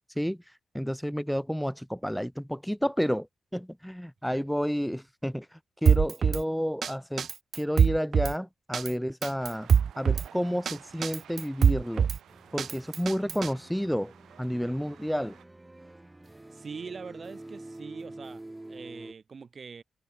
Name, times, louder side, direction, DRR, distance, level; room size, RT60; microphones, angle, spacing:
voice 1, 0.7-3.3 3.5-5.4 5.8-7.3 7.5-9.7 10.0-12.1 12.5-14.1 14.4-15.3, equal, ahead, 1.7 m, -30 dB
Drum kit, 5.9-6.4 6.8-6.9 7.2-8.3 8.7-8.9 9.2-10.3 10.7-10.8 11.0-12.2 12.6-13.5, right 7 dB, 65° right, 0.4 m, -23 dB
sound 1, 9.4-15.4, right 10 dB, 85° right, 7.8 m, -53 dB
sound 2, 12.3-19.1, right 2 dB, 15° right, 4.8 m, -47 dB
voice 2, 16.5-19.8, right 5 dB, 50° right, 3.0 m, -43 dB
cardioid pair, 80°, 0 cm